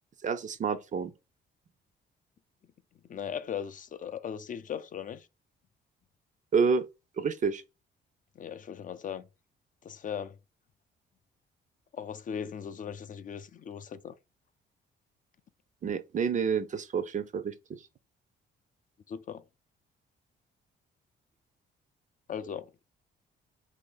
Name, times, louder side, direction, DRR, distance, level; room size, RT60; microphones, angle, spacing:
voice 1, 0.2-1.1 6.5-6.9 7.2-7.6 15.8-17.8, right 6 dB, 40° right, 0.4 m, -29 dB
voice 2, 3.1-5.3 8.4-9.2 9.8-10.4 11.9-14.1 19.1-19.4 22.3-22.7, left 8 dB, 40° left, 0.4 m, -38 dB
2.7 x 2.6 x 3.8 m
cardioid pair, 90°, 20 cm